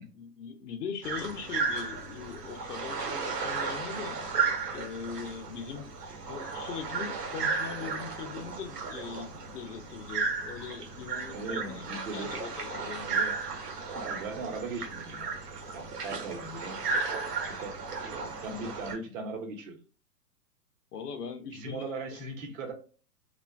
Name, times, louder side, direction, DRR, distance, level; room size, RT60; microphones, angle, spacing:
voice 1, 0.1-4.2 4.7-13.2 20.9-21.9 22.1-22.2, left 6 dB, 70° left, 7 dB, 0.7 m, -41 dB
sound 1, 1.0-19.0, right 4 dB, 75° right, 1.0 m, -34 dB
voice 2, 11.3-12.3 13.1-13.4 14.0-15.3 15.6-16.8 17.4-17.8 18.4-19.8 21.5-22.7, right 3 dB, 55° right, 3 dB, 1.0 m, -38 dB
2.4 x 2.2 x 2.3 m, 0.38 s
hypercardioid pair, 140°, 49 cm